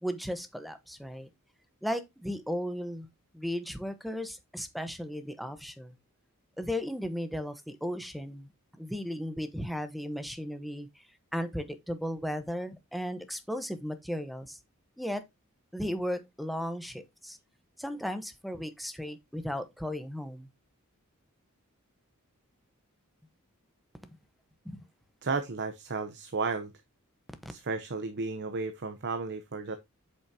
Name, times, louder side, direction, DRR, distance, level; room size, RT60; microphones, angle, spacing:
voice 1, 0.0-1.3 1.8-3.1 3.3-5.9 6.6-8.5 8.8-10.9 11.3-14.6 15.0-15.2 15.7-17.4 17.8-20.5 24.0-24.1 24.6-24.8 27.4-27.5, equal, ahead, 1.1 m, -35 dB
voice 2, 25.2-26.7 27.5-29.8, right 4 dB, 55° right, 0.8 m, -33 dB
8.2 x 6.4 x 2.8 m
head